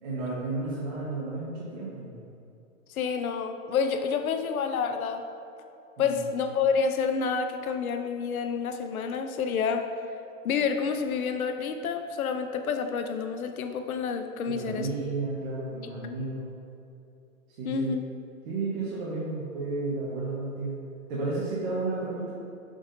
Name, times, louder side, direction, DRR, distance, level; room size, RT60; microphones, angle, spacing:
voice 1, 0.0-2.1 6.0-6.2 14.5-16.5 17.6-17.9 18.4-20.8 21.1-22.3, right 3 dB, 45° right, -8 dB, 1.3 m, -32 dB
voice 2, 2.9-5.3 6.0-9.9 10.4-14.9 17.6-18.0, left 6 dB, 90° left, 7 dB, 0.7 m, -28 dB
6.5 x 6.0 x 2.6 m, 2.7 s
hypercardioid pair, 155°, 41 cm